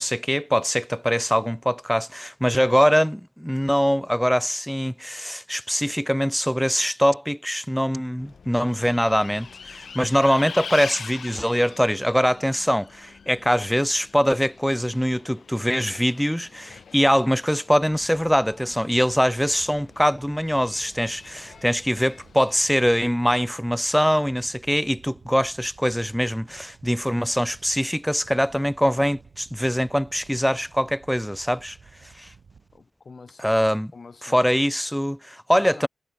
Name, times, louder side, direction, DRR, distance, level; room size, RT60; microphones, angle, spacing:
voice 1, 0.0-31.8 32.2-32.3 33.4-33.9 34.2-35.9, equal, ahead, 0.4 m, -23 dB
Bus, 8.2-22.6, left 6 dB, 60° left, 2.9 m, -43 dB
sound 1, 17.8-32.8, right 5 dB, 60° right, 5.1 m, -52 dB
voice 2, 32.7-34.5 35.5-35.9, left 4 dB, 45° left, 2.4 m, -45 dB
wide cardioid pair, 125°, 0 cm